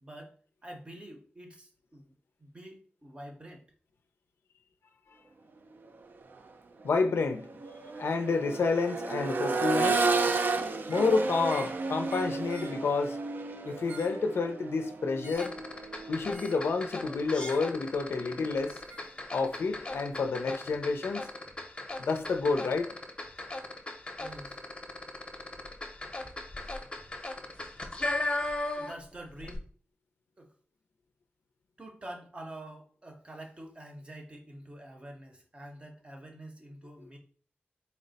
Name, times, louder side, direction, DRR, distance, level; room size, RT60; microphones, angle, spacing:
voice 1, 0.0-3.7 24.2-24.6 28.8-29.7 30.4-30.5 31.8-37.2, right 1 dB, 25° right, 0.7 m, -47 dB
Accelerating revving vroom, 6.2-6.4 6.8-16.7 18.4-18.5, right 3 dB, 55° right, 0.4 m, -32 dB
voice 2, 6.8-7.5 8.0-10.1 10.9-13.2 13.6-15.5 16.1-18.8 19.3-21.3 22.0-22.9, left 4 dB, 80° left, 0.4 m, -29 dB
sound 1, 10.8-11.1 11.5-11.8 12.1-12.8 13.7-14.2 15.2-15.6 16.3-16.7 17.3-17.7 18.9-19.1, right 3 dB, 80° right, 1.0 m, -48 dB
sound 2, 15.3-29.1 29.4-29.6, left 2 dB, 25° left, 0.6 m, -37 dB
4.1 x 2.0 x 3.9 m
wide cardioid pair, 135°, 4 cm